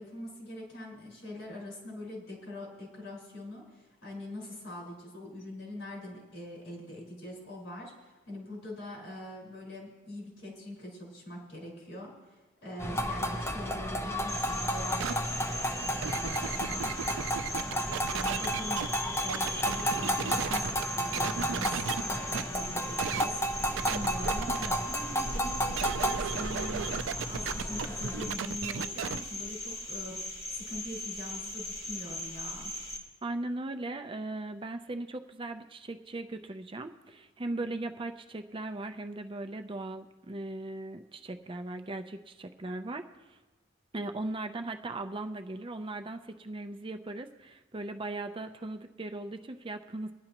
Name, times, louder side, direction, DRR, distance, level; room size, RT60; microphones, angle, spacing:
voice 1, 0.0-15.1 16.1-16.7 18.1-26.9 27.3-32.7, left 1 dB, 70° left, -3 dB, 4.7 m, -43 dB
sound 1, 12.8-28.3, equal, 15° left, 0.8 m, -33 dB
Cricket, 14.3-33.0, left 1 dB, 35° left, 2.6 m, -39 dB
sound 2, 15.0-15.1 15.8-18.9 19.3-20.8 21.1-22.0 22.3-22.4 23.0-23.2 23.8-24.7 25.7-29.2, right 7 dB, 85° right, 0.4 m, -35 dB
voice 2, 33.2-43.4 43.9-50.1, right 2 dB, 30° right, 7 dB, 0.5 m, -38 dB
21.5 x 11.0 x 3.0 m, 1.2 s
head